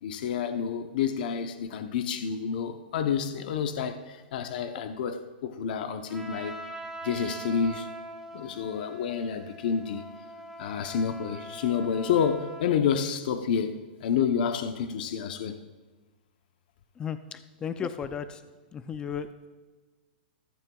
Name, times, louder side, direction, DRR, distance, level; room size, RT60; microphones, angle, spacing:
voice 1, 0.0-6.5 7.0-7.9 8.3-10.1 10.6-15.6, left 7 dB, 60° left, 8 dB, 0.8 m, -29 dB
Trumpet, 6.1-12.7, right 1 dB, 5° right, 1.6 m, -43 dB
voice 2, 17.0-18.4 18.7-19.5, left 7 dB, 15° left, 11 dB, 0.4 m, -35 dB
14.5 x 14.0 x 2.4 m, 1.3 s
hypercardioid pair, 145°, 5 cm